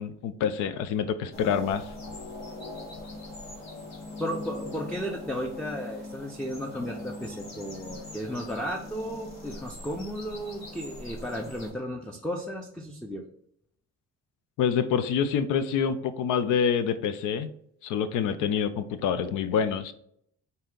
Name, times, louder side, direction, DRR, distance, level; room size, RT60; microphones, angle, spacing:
voice 1, 0.0-1.8 14.6-17.5 17.8-19.9, left 7 dB, 90° left, 13 dB, 0.5 m, -26 dB
sound 1, 1.3-11.7, left 2 dB, 60° left, 1.6 m, -41 dB
voice 2, 4.2-13.2, equal, 5° left, 2 dB, 0.5 m, -34 dB
4.3 x 2.8 x 3.7 m, 0.71 s
cardioid pair, 90°, 30 cm